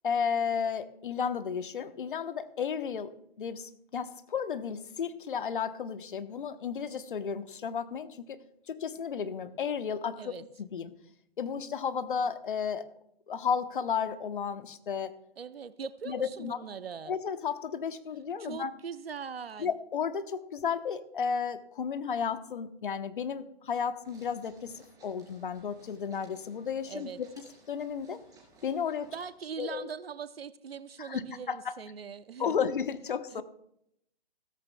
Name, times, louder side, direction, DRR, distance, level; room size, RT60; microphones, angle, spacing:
voice 1, 0.0-3.1 3.4-10.9 11.4-12.9 13.3-15.1 16.1-16.6 17.1-18.7 19.6-28.2 28.6-29.1 29.6-29.9 31.0-31.2 31.5-31.7 32.4-33.4, left 7 dB, 50° left, 11 dB, 1.0 m, -33 dB
voice 2, 15.4-17.1 18.4-19.7 26.9-27.2 29.1-32.6 33.3-33.4, right 7 dB, 60° right, 15 dB, 0.8 m, -41 dB
sound 1, 24.0-29.3, right 2 dB, 10° right, 3.2 m, -59 dB
16.0 x 14.0 x 2.3 m, 0.75 s
figure-of-eight pair, 135°, 33 cm